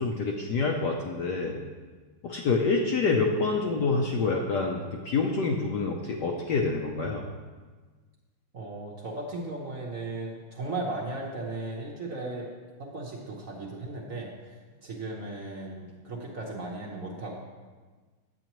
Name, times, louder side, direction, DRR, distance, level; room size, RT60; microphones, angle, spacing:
voice 1, 0.0-1.6 2.2-7.2, left 4 dB, 70° left, 0 dB, 1.0 m, -27 dB
voice 2, 8.5-12.5 12.8-17.4, right 2 dB, 50° right, -3 dB, 1.0 m, -36 dB
9.0 x 8.1 x 3.0 m, 1.4 s
omnidirectional pair, 2.3 m